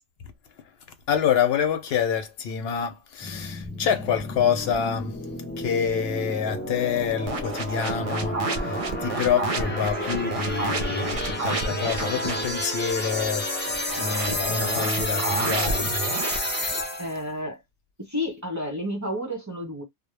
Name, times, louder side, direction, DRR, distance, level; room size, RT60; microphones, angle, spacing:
voice 1, 1.1-5.1 5.6-15.9, left 7 dB, 70° left, 0.8 m, -27 dB
sound 1, 3.2-17.2, left 1 dB, 15° left, 0.3 m, -31 dB
sound 2, 7.3-12.5 13.9-16.4, right 3 dB, 50° right, 0.4 m, -30 dB
voice 2, 17.0-17.6 18.0-19.8, left 1 dB, 20° right, 0.7 m, -31 dB
2.1 x 2.0 x 3.1 m
omnidirectional pair, 1.1 m